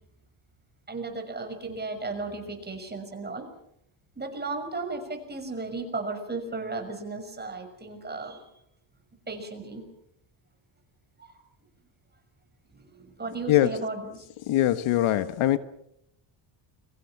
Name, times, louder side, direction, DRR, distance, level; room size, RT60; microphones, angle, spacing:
voice 1, 0.9-3.4 4.2-8.4 9.3-9.8 11.2-11.4 12.7-14.2, right 3 dB, 20° right, 5 dB, 6.2 m, -35 dB
voice 2, 13.5-13.8 14.5-15.6, left 13 dB, 80° left, 13 dB, 1.4 m, -22 dB
30.0 x 23.5 x 5.9 m, 0.75 s
cardioid pair, 130°, 49 cm